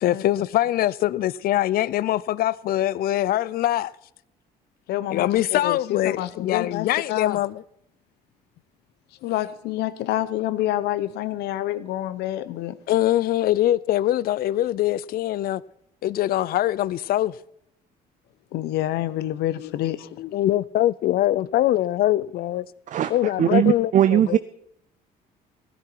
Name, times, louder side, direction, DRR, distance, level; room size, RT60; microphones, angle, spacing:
voice 1, 0.0-3.9 5.1-7.6 12.9-15.6 16.0-17.3 19.6-19.9 20.2-22.7 23.1-24.4, left 14 dB, 60° left, 0.5 m, -23 dB
voice 2, 4.9-7.4 9.2-12.8 18.5-20.1, left 13 dB, 80° left, 0.9 m, -27 dB
voice 3, 23.4-24.4, right 11 dB, 50° right, 0.5 m, -19 dB
16.0 x 11.0 x 4.6 m
cardioid pair, 110°, 17 cm